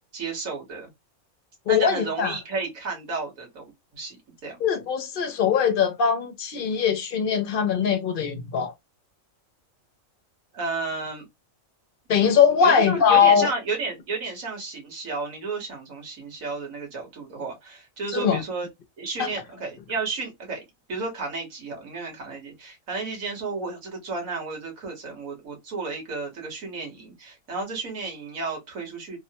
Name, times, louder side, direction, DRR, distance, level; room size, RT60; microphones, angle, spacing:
voice 1, 0.1-0.9 1.7-4.2 4.4-4.6 10.5-11.3 12.6-18.7 19.0-20.6 20.9-29.2, right 3 dB, 80° right, 1.9 m, -32 dB
voice 2, 1.7-2.4 4.6-8.7 12.1-13.5 18.1-18.4 19.2-19.3, left 7 dB, 50° left, 0.7 m, -21 dB
3.5 x 2.2 x 2.7 m
omnidirectional pair, 1.4 m